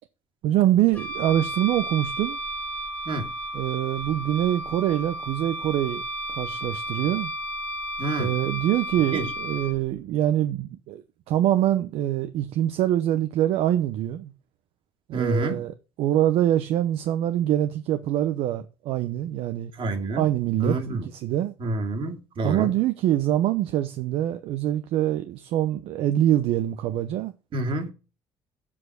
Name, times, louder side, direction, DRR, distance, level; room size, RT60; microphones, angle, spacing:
voice 1, 0.4-2.4 3.5-6.0 6.3-7.3 8.2-11.0 11.3-14.3 15.1-19.7 20.2-21.5 22.4-27.3, right 12 dB, 75° right, 0.9 m, -24 dB
Wind instrument woodwind instrument, 0.9-9.7, equal, 15° left, 2.2 m, -33 dB
voice 2, 8.0-8.3 9.1-9.3 15.1-15.7 19.8-20.3 20.6-21.1 21.6-22.7 27.5-27.9, right 2 dB, 60° right, 2.6 m, -28 dB
7.6 x 6.4 x 6.1 m
supercardioid pair, 75°, 10 cm